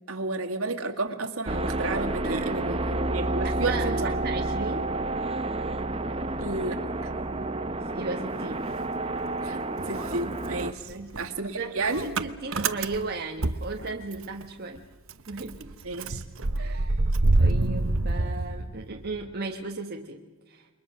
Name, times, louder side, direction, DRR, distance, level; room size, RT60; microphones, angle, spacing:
voice 1, 0.1-4.1 6.4-7.1 9.4-9.6 9.9-12.1 15.8-16.2, right 3 dB, 90° right, 4 dB, 2.0 m, -32 dB
sound 1, 1.5-10.7, right 2 dB, 25° right, 1.0 m, -30 dB
voice 2, 2.2-3.0 3.4-3.9 4.2-4.9 7.8-8.7 10.9-14.8 15.3-15.8 16.6-16.9 17.3-20.7, right 3 dB, 50° right, 2 dB, 1.3 m, -36 dB
Motor vehicle (road) / Engine starting, 8.3-9.5 9.8-14.4 14.8-14.9 15.1-19.2, right 2 dB, 70° right, 1.0 m, -27 dB
28.5 x 23.0 x 6.2 m, 1.3 s
head